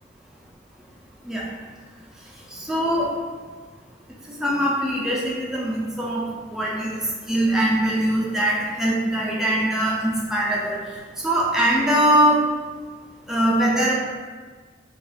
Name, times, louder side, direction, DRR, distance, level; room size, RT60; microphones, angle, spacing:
voice 1, 2.5-3.1 4.3-10.9 11.2-12.5 13.3-14.0, right 1 dB, 5° right, -5 dB, 0.3 m, -22 dB
2.3 x 2.2 x 3.1 m, 1.5 s
head